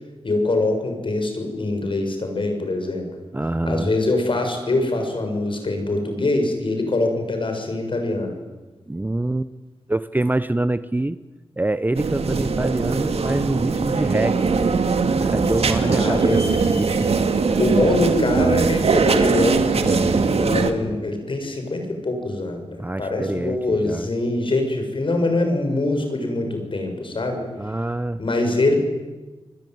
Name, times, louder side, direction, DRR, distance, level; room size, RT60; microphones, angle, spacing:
voice 1, 0.2-3.1 3.7-8.3 15.7-16.4 17.6-27.4 28.2-28.8, left 2 dB, 55° left, 5 dB, 7.1 m, -23 dB
voice 2, 3.3-3.9 8.9-9.5 9.9-11.2 11.6-14.4 15.2-17.3 22.8-24.1 27.6-28.2, right 2 dB, 15° right, 13 dB, 0.8 m, -25 dB
sound 1, 11.9-20.7, right 4 dB, 75° right, 2.2 m, -20 dB
sound 2, 15.4-18.9, left 1 dB, 20° left, 7.4 m, -43 dB
28.0 x 21.5 x 9.5 m, 1.2 s
wide cardioid pair, 70°, 10 cm